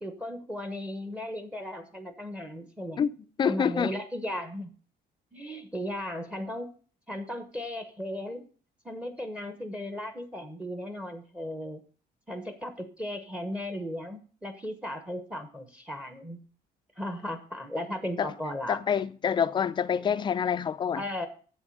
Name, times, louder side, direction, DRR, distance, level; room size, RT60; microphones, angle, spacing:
voice 1, 0.0-3.1 3.4-4.7 5.3-6.7 7.1-8.4 8.8-11.8 12.3-16.4 17.0-18.8 20.9-21.3, left 1 dB, 5° right, 0.9 m, -36 dB
voice 2, 3.4-4.0 18.2-18.3 18.7-21.0, left 7 dB, 25° left, 0.4 m, -27 dB
7.8 x 7.2 x 6.3 m
cardioid pair, 170°, 17 cm